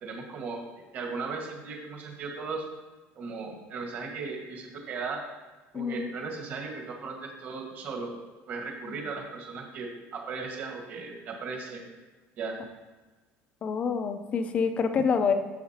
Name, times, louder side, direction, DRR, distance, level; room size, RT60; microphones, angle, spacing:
voice 1, 0.0-0.6 0.9-2.6 3.1-5.2 5.7-8.1 8.5-11.8 12.4-12.6, right 4 dB, 35° right, 0 dB, 1.6 m, -37 dB
voice 2, 5.7-6.1 8.9-9.0 13.6-15.3, left 6 dB, 25° left, 8 dB, 0.6 m, -27 dB
10.5 x 7.4 x 2.9 m, 1.2 s
cardioid pair, 175°, 5 cm